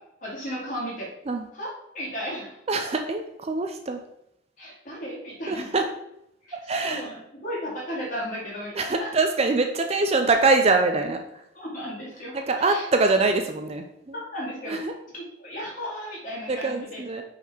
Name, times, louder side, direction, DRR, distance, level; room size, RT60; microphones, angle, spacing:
voice 1, 0.2-1.1 1.5-2.6 4.6-5.8 6.4-9.1 11.5-12.8 14.1-14.8 15.1-17.0, equal, 40° left, -5 dB, 2.4 m, -35 dB
voice 2, 2.7-4.0 5.5-5.9 6.7-7.1 8.8-11.2 12.3-14.2 14.7-14.9 16.5-17.2, right 3 dB, 30° right, 5 dB, 0.4 m, -24 dB
5.6 x 4.2 x 4.4 m, 0.79 s
head